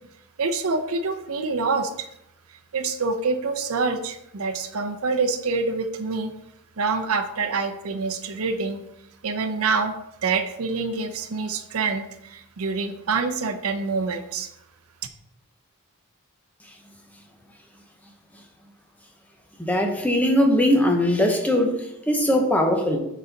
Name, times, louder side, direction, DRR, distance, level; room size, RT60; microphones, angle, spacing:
voice 1, 0.4-2.1 2.7-6.3 6.8-8.8 9.2-9.9 10.2-14.5, right 4 dB, 75° right, 7 dB, 0.6 m, -26 dB
voice 2, 19.6-23.0, left 1 dB, 5° left, 2 dB, 0.7 m, -20 dB
6.5 x 4.1 x 4.0 m, 0.83 s
head